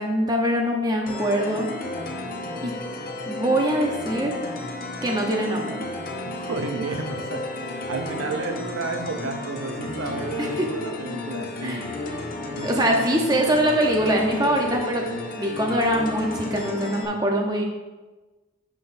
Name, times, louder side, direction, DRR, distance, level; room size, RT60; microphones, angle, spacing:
voice 1, 0.0-1.7 2.6-2.7 3.3-4.3 5.0-5.8 10.4-10.8 11.6-11.8 12.6-15.1 15.3-17.6, right 1 dB, 20° right, 1 dB, 0.8 m, -23 dB
sound 1, 1.1-17.1, left 2 dB, 40° left, 0.9 m, -33 dB
voice 2, 6.3-11.9 12.5-13.5, right 3 dB, 70° right, 5 dB, 0.6 m, -32 dB
9.2 x 6.0 x 2.6 m, 1.2 s
head